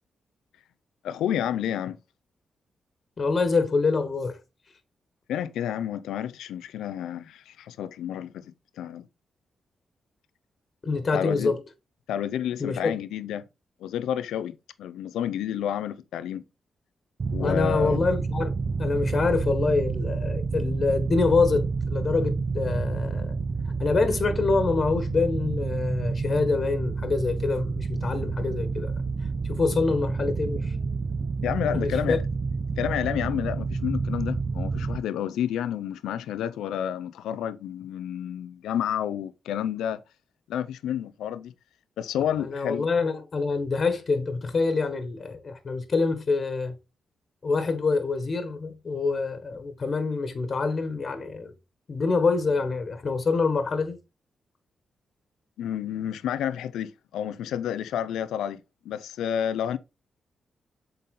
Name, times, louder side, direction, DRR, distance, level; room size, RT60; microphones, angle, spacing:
voice 1, 1.0-2.0 5.3-8.4 8.8-9.1 11.1-11.5 12.1-13.4 13.8-16.4 17.3-18.0 31.4-32.2 32.8-40.0 40.5-41.5 42.0-42.9 55.6-59.8, left 10 dB, 85° left, 0.5 m, -30 dB
voice 2, 3.2-4.4 10.8-11.6 12.6-13.0 17.4-18.5 18.8-23.4 23.8-28.9 29.4-30.7 31.7-32.2 42.4-46.7 47.4-51.5 51.9-54.0, left 4 dB, 50° left, 1.4 m, -26 dB
sound 1, 17.2-35.0, right 4 dB, 55° right, 0.7 m, -29 dB
7.7 x 4.0 x 3.8 m
supercardioid pair, 50°, 0 cm